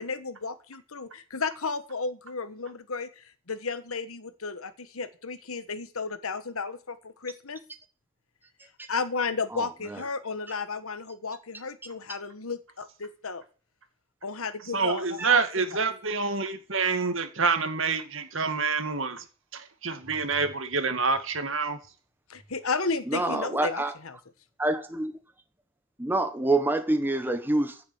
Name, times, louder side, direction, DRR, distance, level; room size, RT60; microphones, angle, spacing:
voice 1, 0.0-7.6 8.9-13.4 14.2-15.4 22.3-23.8, left 4 dB, 80° left, 1.4 m, -33 dB
voice 2, 9.5-10.0 15.2-15.3 23.1-23.9 24.6-25.2 26.0-27.8, right 2 dB, 10° right, 1.2 m, -27 dB
voice 3, 14.7-19.2 19.5-21.8, right 4 dB, 65° right, 2.3 m, -27 dB
15.5 x 7.3 x 7.2 m
head